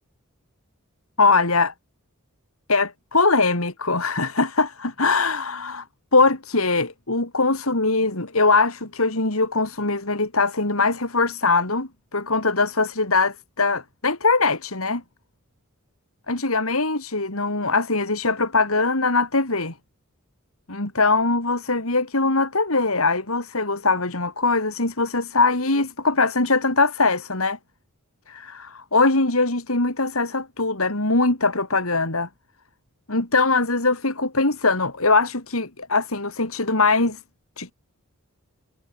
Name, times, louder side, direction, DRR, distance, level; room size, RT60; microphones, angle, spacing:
voice 1, 1.2-1.7 2.7-5.8 6.1-15.0 16.3-19.7 20.7-27.6 28.3-32.3 33.1-37.2 37.6-37.7, left 3 dB, 75° left, 4.0 m, -21 dB
head